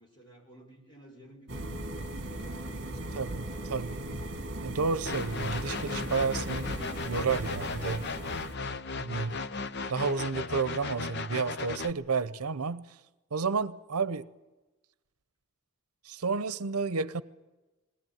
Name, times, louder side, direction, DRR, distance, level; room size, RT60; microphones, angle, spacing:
voice 1, 0.0-4.2, right 1 dB, 20° left, 5.0 m, -55 dB
sound 1, 1.5-8.6, right 1 dB, 50° right, 2.0 m, -38 dB
voice 2, 4.6-8.0 8.9-9.4 9.9-12.8 13.3-14.3 16.0-17.2, right 5 dB, 90° right, 0.8 m, -31 dB
sound 2, 5.1-11.9, left 4 dB, 50° left, 0.7 m, -36 dB
21.0 x 17.0 x 9.4 m
head